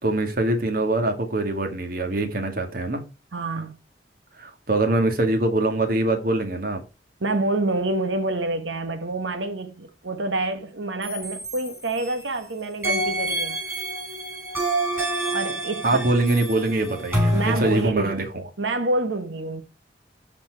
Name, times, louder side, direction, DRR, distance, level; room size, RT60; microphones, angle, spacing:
voice 1, 0.0-3.0 4.4-6.8 15.8-18.4, right 2 dB, 50° right, 2.0 m, -23 dB
voice 2, 3.3-3.8 7.2-13.6 15.3-16.0 17.3-18.2 18.6-19.6, right 2 dB, 90° right, 1.2 m, -27 dB
sound 1, 11.0-12.4 12.8-17.9, right 1 dB, 15° right, 5.9 m, -27 dB
13.0 x 4.4 x 4.7 m
head